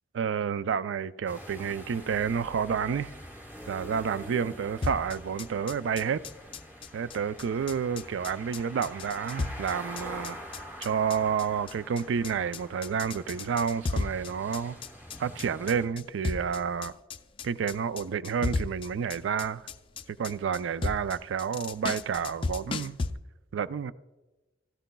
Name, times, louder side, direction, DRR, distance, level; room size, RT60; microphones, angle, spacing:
voice 1, 0.2-3.1 3.7-6.2 6.9-10.4 10.8-14.8 15.2-16.9 17.4-19.6 20.2-23.0 23.5-23.9, right 7 dB, 85° right, 0.4 m, -30 dB
sound 1, 1.3-15.9, equal, 10° right, 2.2 m, -45 dB
sound 2, 4.8-23.1, left 3 dB, 30° left, 0.4 m, -35 dB
16.5 x 14.0 x 2.2 m
head